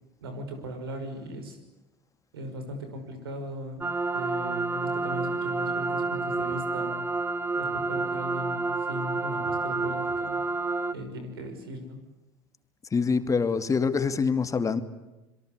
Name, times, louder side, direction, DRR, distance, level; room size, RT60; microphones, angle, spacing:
voice 1, 0.2-1.6 2.3-3.8 4.1-7.0 7.5-10.4 10.9-12.0, equal, 90° right, 7 dB, 5.9 m, -38 dB
sound 1, 3.8-10.9, right 3 dB, 15° right, 1.1 m, -29 dB
voice 2, 12.9-14.8, left 5 dB, 25° left, 10 dB, 2.5 m, -25 dB
26.5 x 23.0 x 8.2 m, 1.0 s
hypercardioid pair, 80°, 12 cm